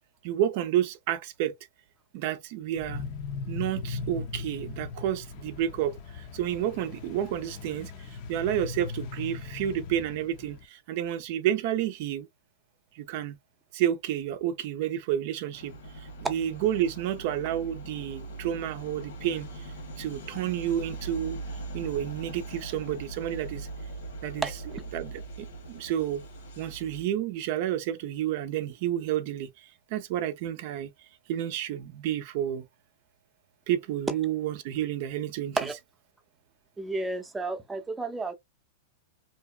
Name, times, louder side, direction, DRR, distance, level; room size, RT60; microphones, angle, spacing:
voice 1, 0.2-1.5 2.1-3.0 3.5-12.3 12.9-13.4 13.7-21.4 21.7-23.7 24.2-24.5 24.9-26.2 26.6-30.9 31.3-32.6 33.7-35.6, right 11 dB, 55° right, 0.5 m, -30 dB
sound 1, 2.8-10.6, left 4 dB, 50° left, 0.6 m, -39 dB
sound 2, 15.5-27.0, right 2 dB, 80° left, 1.3 m, -41 dB
voice 2, 24.4-24.8 35.6-35.7 36.8-38.3, right 3 dB, 10° right, 0.6 m, -32 dB
2.7 x 2.2 x 2.3 m
hypercardioid pair, 130°, 0 cm